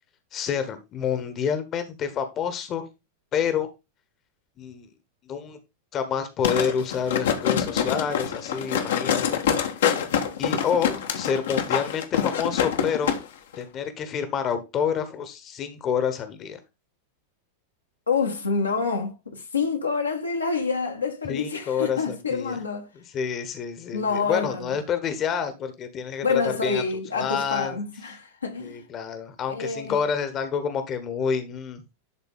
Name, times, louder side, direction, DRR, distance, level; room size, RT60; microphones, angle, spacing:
voice 1, 0.3-2.8 3.3-3.7 4.6-4.9 5.2-5.6 5.9-9.5 10.4-13.1 13.6-16.6 21.3-22.6 22.9-26.8 27.1-27.8 28.6-31.8, left 7 dB, 30° left, 1.3 m, -28 dB
sound 1, 6.4-13.2 13.5-13.6, left 8 dB, 60° left, 1.3 m, -25 dB
voice 2, 18.1-22.9 23.9-24.8 26.2-28.8 29.5-30.0, left 4 dB, 75° left, 1.7 m, -27 dB
11.5 x 4.0 x 3.6 m
figure-of-eight pair, 90°, 0 cm